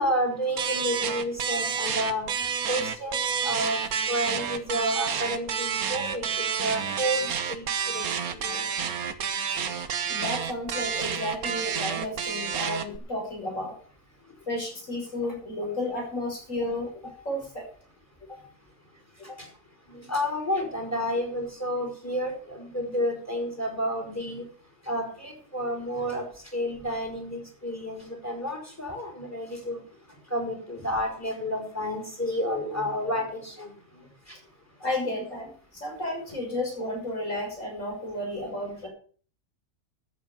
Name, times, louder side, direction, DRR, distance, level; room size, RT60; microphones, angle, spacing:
voice 1, 0.0-2.3 2.7-3.8 4.1-8.0 8.3-8.7 17.4-17.5 19.4-19.5 19.9-24.5 24.9-26.2 26.5-29.8 30.3-34.4, equal, 10° left, 2 dB, 4.5 m, -30 dB
sound 1, 0.6-13.0, right 7 dB, 70° right, 1.5 m, -29 dB
voice 2, 10.1-13.7 14.5-17.7 18.3-18.4 19.3-19.4 34.8-38.9, left 1 dB, 50° left, 0 dB, 6.6 m, -32 dB
13.0 x 8.6 x 7.0 m, 0.44 s
omnidirectional pair, 1.6 m